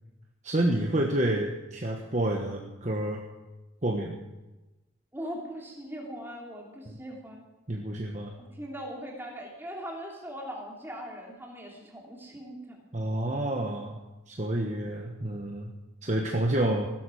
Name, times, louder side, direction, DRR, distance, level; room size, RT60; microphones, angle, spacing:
voice 1, 0.4-3.2 3.8-4.2 6.9-7.0 7.7-8.3 12.9-14.0 14.3-15.7 16.0-16.9, right 1 dB, 35° right, 1 dB, 1.2 m, -29 dB
voice 2, 5.1-7.4 8.3-12.8, equal, 10° right, -1 dB, 3.0 m, -40 dB
16.0 x 12.0 x 6.3 m, 1.1 s
head